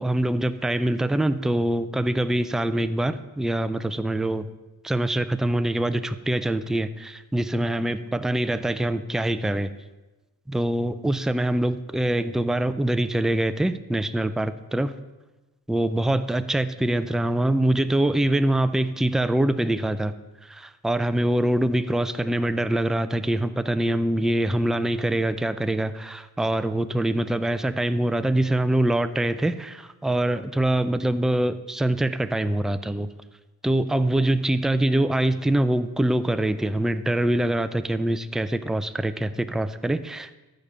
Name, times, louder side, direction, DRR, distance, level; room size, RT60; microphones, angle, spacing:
voice 1, 0.0-4.4 4.8-9.7 10.5-14.9 15.7-20.1 20.4-33.1 33.6-40.4, right 1 dB, ahead, 11 dB, 0.3 m, -24 dB
13.5 x 5.2 x 6.7 m, 1.1 s
wide cardioid pair, 135°, 37 cm